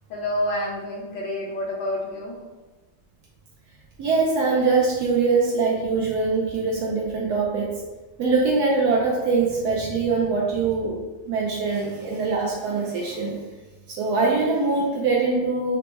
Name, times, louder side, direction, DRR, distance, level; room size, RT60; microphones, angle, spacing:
voice 1, 0.1-2.4, left 1 dB, 65° left, -4 dB, 1.5 m, -28 dB
voice 2, 4.0-7.7 8.2-11.0 11.3-13.3 13.9-15.8, right 4 dB, 85° right, -4 dB, 0.8 m, -23 dB
4.4 x 2.1 x 2.9 m, 1.1 s
omnidirectional pair, 2.3 m